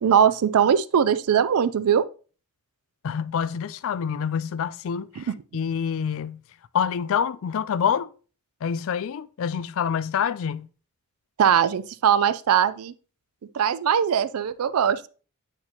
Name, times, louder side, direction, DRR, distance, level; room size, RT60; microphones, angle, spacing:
voice 1, 0.0-2.1 5.2-5.3 11.4-12.9 13.5-15.1, right 8 dB, 80° right, 0.4 m, -21 dB
voice 2, 3.0-6.4 6.7-8.1 8.6-10.7, left 7 dB, 65° left, 0.4 m, -27 dB
8.5 x 4.5 x 2.9 m
head